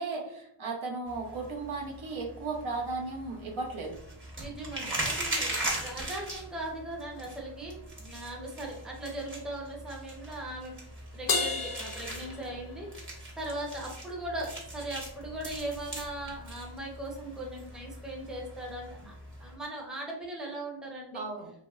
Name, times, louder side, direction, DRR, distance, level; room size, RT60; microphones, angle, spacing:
voice 1, 0.0-4.0 21.1-21.5, right 3 dB, 70° right, 0 dB, 0.8 m, -35 dB
sound 1, 1.1-19.6, right 1 dB, 25° right, 0.9 m, -40 dB
voice 2, 4.4-10.8 11.1-12.9 13.4-19.1 19.4-21.2, right 1 dB, ahead, -1 dB, 0.5 m, -39 dB
Crash cymbal, 11.3-13.0, left 3 dB, 45° left, 0.5 m, -32 dB
3.0 x 2.7 x 2.3 m, 0.72 s
wide cardioid pair, 100°, 50 cm